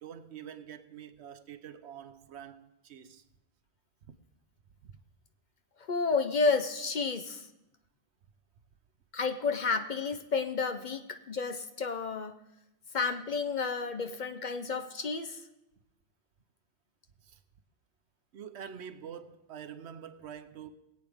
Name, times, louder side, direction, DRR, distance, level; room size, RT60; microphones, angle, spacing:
voice 1, 0.0-3.2 4.8-5.0 17.2-17.4 18.3-20.7, right 8 dB, 80° right, 1.0 m, -46 dB
voice 2, 5.9-7.5 9.1-12.3 12.9-15.4, left 4 dB, 50° left, 0.7 m, -31 dB
20.5 x 8.6 x 3.5 m
omnidirectional pair, 1.1 m